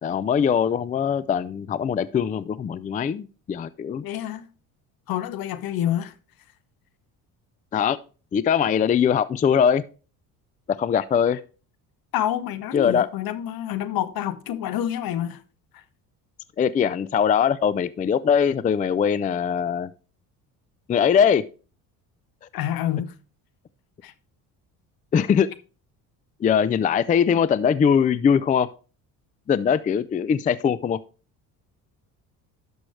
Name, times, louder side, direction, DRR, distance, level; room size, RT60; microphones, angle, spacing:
voice 1, 0.0-4.0 7.7-8.0 8.3-9.8 10.8-11.4 12.7-13.1 16.6-19.9 20.9-21.4 25.1-25.5 26.4-28.7 29.5-31.0, left 7 dB, 20° left, 0.3 m, -21 dB
voice 2, 4.0-4.5 5.1-6.1 12.1-15.4 15.7-15.8 22.5-23.1 24.0-24.1, left 11 dB, 65° left, 1.0 m, -28 dB
11.5 x 6.2 x 3.2 m
cardioid pair, 100°, 38 cm